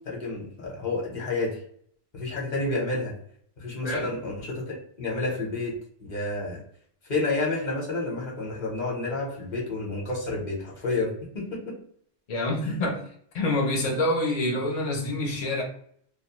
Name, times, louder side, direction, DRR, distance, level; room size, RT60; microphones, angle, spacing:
voice 1, 0.0-1.6 2.1-3.1 3.6-5.7 6.0-6.6 7.1-11.7 12.6-12.7, left 2 dB, 40° left, -2 dB, 0.9 m, -30 dB
voice 2, 12.3-13.0 13.3-15.6, left 1 dB, 70° left, 0 dB, 0.3 m, -26 dB
2.3 x 2.2 x 2.8 m, 0.62 s
omnidirectional pair, 1.3 m